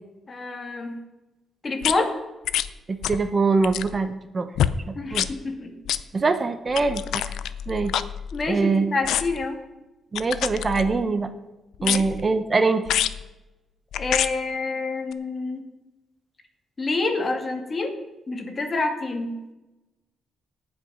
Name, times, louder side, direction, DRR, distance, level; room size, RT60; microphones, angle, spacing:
voice 1, 0.3-1.0 1.6-2.1 5.0-5.7 8.3-9.6 11.8-12.1 13.9-15.6 16.8-17.9 18.3-19.3, left 3 dB, 35° left, 4 dB, 2.3 m, -27 dB
sound 1, 1.8-1.9 2.5-2.7 3.0-3.3 3.6-4.0 4.6-4.8 5.1-5.3 5.9-6.0 6.7-8.6 9.0-9.4 10.2-11.1 11.8-12.3 12.9-13.2 13.9-14.3 15.1-15.2, left 10 dB, 85° left, 0.5 m, -27 dB
voice 2, 2.9-4.5 4.9-5.3 6.1-7.4 7.7-7.9 8.5-8.9 10.1-11.3 11.8-12.8, right 4 dB, 35° right, 9 dB, 1.0 m, -23 dB
18.0 x 6.2 x 5.5 m, 1.0 s
cardioid pair, 90°, 0 cm